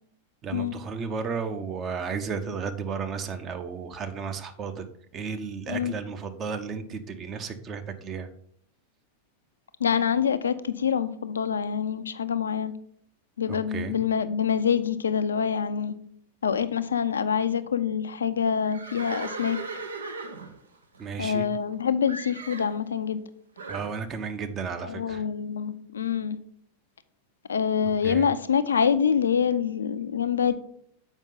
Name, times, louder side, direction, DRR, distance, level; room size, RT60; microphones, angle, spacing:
voice 1, 0.4-4.8 5.1-8.3 13.5-14.0 21.0-21.5 23.7-25.2 28.0-28.3, right 6 dB, 30° right, 8 dB, 0.8 m, -33 dB
voice 2, 9.8-12.7 13.4-15.9 16.4-19.6 21.2-23.2 24.8-26.4 27.5-30.5, left 7 dB, 70° left, 13 dB, 0.5 m, -26 dB
Livestock farm animals working animals, 18.6-21.7 22.1-22.8 23.6-23.9, right 3 dB, 70° right, 0.7 m, -38 dB
7.2 x 5.2 x 3.9 m, 0.66 s
figure-of-eight pair, 90°, 0 cm